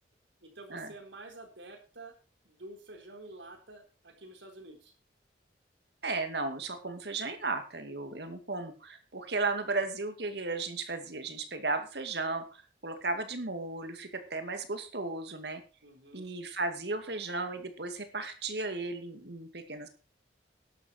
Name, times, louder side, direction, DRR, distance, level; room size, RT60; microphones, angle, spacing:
voice 1, 0.4-2.1 2.4-4.9 15.8-16.3, right 2 dB, 85° right, 3 dB, 4.1 m, -49 dB
voice 2, 6.0-15.6 16.1-19.9, right 3 dB, 65° right, 8 dB, 2.3 m, -35 dB
12.0 x 11.5 x 4.6 m, 0.34 s
head